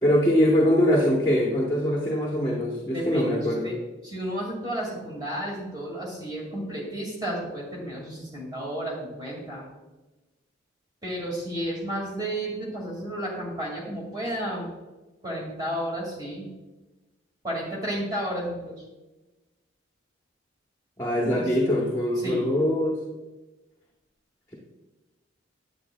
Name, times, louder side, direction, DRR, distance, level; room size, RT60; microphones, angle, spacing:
voice 1, 0.0-3.7 21.0-23.0, equal, 15° left, -4 dB, 1.0 m, -23 dB
voice 2, 2.9-3.8 4.0-9.7 11.0-14.7 15.2-16.5 17.4-18.8 21.4-21.5 22.2-22.5, right 1 dB, 20° right, -2 dB, 2.0 m, -32 dB
8.7 x 8.1 x 2.2 m, 1.1 s
head